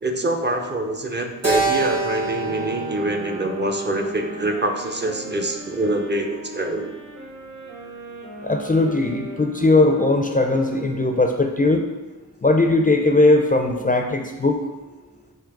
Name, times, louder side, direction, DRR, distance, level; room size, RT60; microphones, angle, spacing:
voice 1, 0.0-6.9, right 1 dB, 30° right, 3 dB, 0.5 m, -25 dB
Keyboard (musical), 1.4-5.8, right 3 dB, 50° right, 1.0 m, -28 dB
sound 1, 2.3-11.5, right 2 dB, 65° right, 1.5 m, -39 dB
voice 2, 8.4-11.8 12.4-14.6, left 2 dB, 25° left, 3 dB, 0.4 m, -19 dB
3.8 x 2.8 x 4.6 m, 1.2 s
wide cardioid pair, 45°, 33 cm